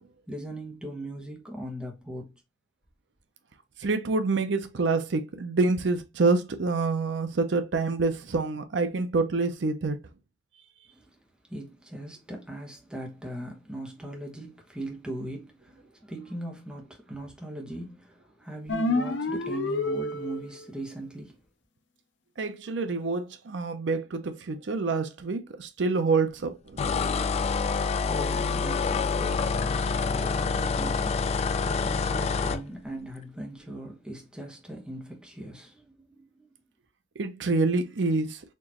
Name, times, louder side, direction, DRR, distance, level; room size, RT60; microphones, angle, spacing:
voice 1, 0.3-2.4 10.9-21.4 27.6-36.5, right 1 dB, 5° right, 1.3 m, -40 dB
voice 2, 3.8-10.0 22.4-26.8 37.2-38.4, right 3 dB, 75° right, 0.6 m, -27 dB
sound 1, 18.7-20.7, left 2 dB, 75° left, 0.7 m, -28 dB
sound 2, 26.8-32.6, left 5 dB, 35° left, 0.3 m, -27 dB
4.4 x 2.9 x 2.9 m
head